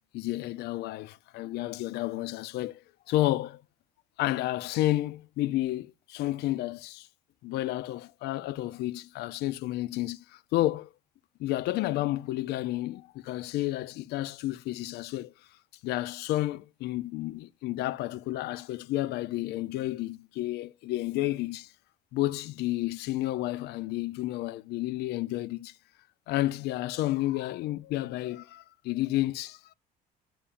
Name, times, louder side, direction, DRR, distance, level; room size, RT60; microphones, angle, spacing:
voice 1, 0.1-2.8 3.1-3.6 4.2-7.1 7.4-10.9 11.4-15.3 15.8-21.7 22.1-25.7 26.3-29.7, left 16 dB, 80° left, 0.5 m, -31 dB
11.5 x 7.0 x 2.5 m
cardioid pair, 110°, 17 cm